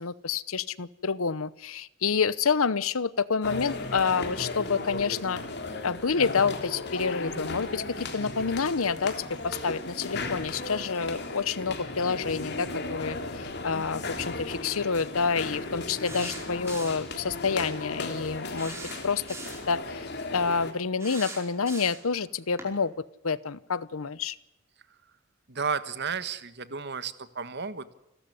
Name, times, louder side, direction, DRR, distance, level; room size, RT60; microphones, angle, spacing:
voice 1, 0.0-5.4 5.8-18.7 19.0-19.2 19.7-22.9 23.2-24.4, left 5 dB, 70° left, 19 dB, 0.8 m, -28 dB
sound 1, 3.4-20.7, left 2 dB, 50° left, 3.2 m, -36 dB
sound 2, 16.1-17.1 17.6-17.7 18.6-19.7 21.0-22.1 22.6-22.7, right 3 dB, 10° right, 5.0 m, -41 dB
voice 2, 25.5-27.9, right 6 dB, 50° right, 13 dB, 1.5 m, -33 dB
29.0 x 13.0 x 9.7 m, 0.93 s
head